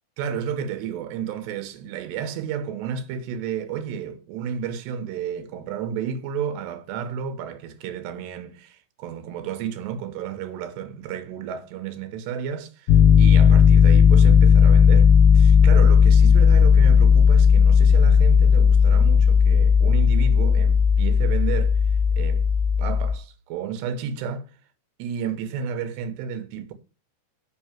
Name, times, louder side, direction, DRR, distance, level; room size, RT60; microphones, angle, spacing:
voice 1, 0.2-21.8 22.2-22.5 22.8-24.5 25.0-26.7, right 7 dB, 75° right, 3.1 m, -32 dB
Piano, 12.9-23.1, left 6 dB, 80° left, 2.7 m, -15 dB
6.4 x 6.1 x 7.2 m
omnidirectional pair, 5.1 m